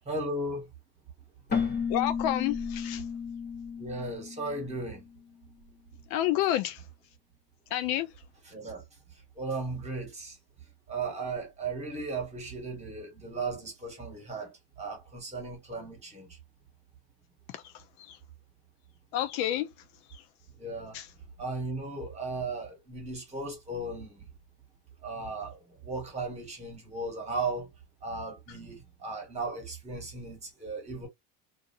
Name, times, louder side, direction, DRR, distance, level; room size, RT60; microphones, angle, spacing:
voice 1, 0.1-0.6 3.8-5.0 8.5-8.8 9.4-10.4 10.9-16.4 20.6-21.0 21.4-24.3 25.0-27.7 28.0-31.1, right 3 dB, 15° right, 1.4 m, -36 dB
Keyboard (musical), 1.5-5.1, left 6 dB, 25° left, 1.1 m, -33 dB
voice 2, 1.9-3.0 6.1-6.8 7.7-8.1 17.5-18.2 19.1-19.7 20.1-20.2 20.9-21.1, left 12 dB, 65° left, 0.6 m, -30 dB
2.6 x 2.5 x 2.5 m
cardioid pair, 140°, 42 cm